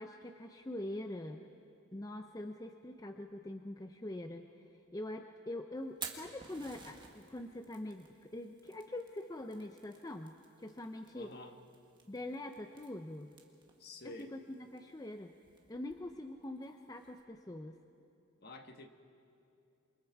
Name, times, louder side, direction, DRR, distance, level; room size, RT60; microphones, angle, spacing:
voice 1, 0.0-1.4 1.9-4.5 4.9-11.3 12.1-13.4 14.0-15.4 15.7-17.8, left 1 dB, 15° left, 5 dB, 0.6 m, -44 dB
Fire, 5.8-17.2, right 5 dB, 20° right, 1.6 m, -54 dB
voice 2, 11.1-11.6 13.8-14.3 18.4-18.9, left 2 dB, 50° left, 5 dB, 1.3 m, -49 dB
28.0 x 24.5 x 4.7 m, 2.7 s
head